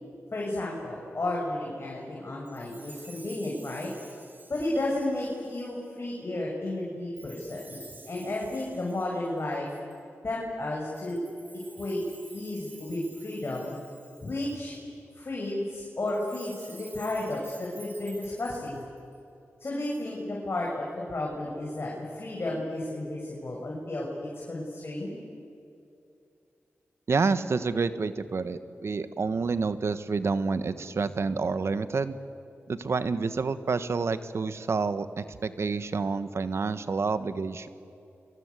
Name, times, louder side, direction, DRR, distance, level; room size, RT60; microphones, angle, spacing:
voice 1, 0.3-3.9 4.5-9.7 10.2-11.2 11.8-12.0 12.3-13.8 14.2-14.8 15.2-18.9 19.6-25.2, left 1 dB, 50° left, -3 dB, 6.3 m, -33 dB
Chime, 2.4-5.8 7.1-10.0 10.9-14.8 16.0-19.2, right 2 dB, 40° right, 4.2 m, -51 dB
voice 2, 27.1-32.2 32.7-37.7, right 4 dB, 65° right, 12 dB, 1.4 m, -28 dB
30.0 x 23.5 x 8.4 m, 2.7 s
cardioid pair, 55°, 5 cm